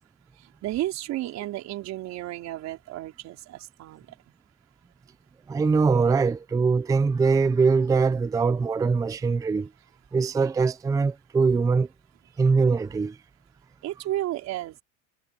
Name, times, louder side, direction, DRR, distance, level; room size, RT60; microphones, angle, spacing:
voice 1, 0.4-4.1 13.8-14.8, right 15 dB, 50° right, 4.5 m, -32 dB
voice 2, 5.5-9.7 10.1-11.9 12.4-13.2, right 4 dB, 10° right, 0.5 m, -22 dB
cardioid pair, 135°, 34 cm